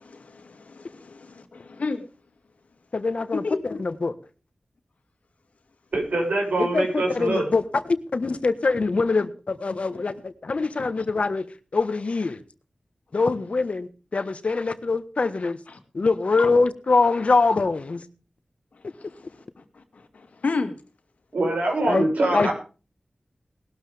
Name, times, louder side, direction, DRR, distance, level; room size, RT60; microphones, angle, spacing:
voice 1, 0.1-2.0 3.3-3.8 20.4-20.7, left 3 dB, 80° left, 7 dB, 2.4 m, -30 dB
voice 2, 2.9-4.1 6.6-11.5 11.7-12.4 13.1-15.6 15.9-18.0 21.9-22.1 22.3-22.5, left 3 dB, 60° left, 11 dB, 1.4 m, -24 dB
voice 3, 5.9-7.4 21.3-22.5, right 2 dB, 90° right, 1 dB, 6.7 m, -24 dB
19.5 x 12.5 x 3.5 m, 0.35 s
wide cardioid pair, 80°, 2 cm